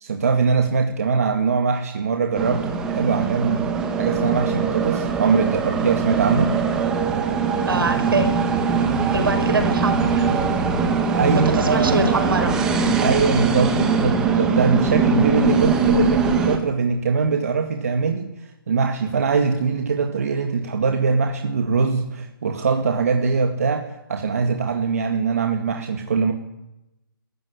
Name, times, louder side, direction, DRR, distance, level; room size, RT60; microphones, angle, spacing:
voice 1, 0.0-3.7 4.0-6.5 11.1-12.0 13.0-26.3, right 5 dB, 40° right, 4 dB, 2.0 m, -22 dB
sound 1, 2.3-16.6, right 4 dB, 5° right, 1.1 m, -21 dB
voice 2, 7.7-8.3 9.1-10.3 11.3-12.5, right 3 dB, 75° right, 6 dB, 5.7 m, -23 dB
27.0 x 14.5 x 9.7 m, 0.90 s
hypercardioid pair, 180°, 12 cm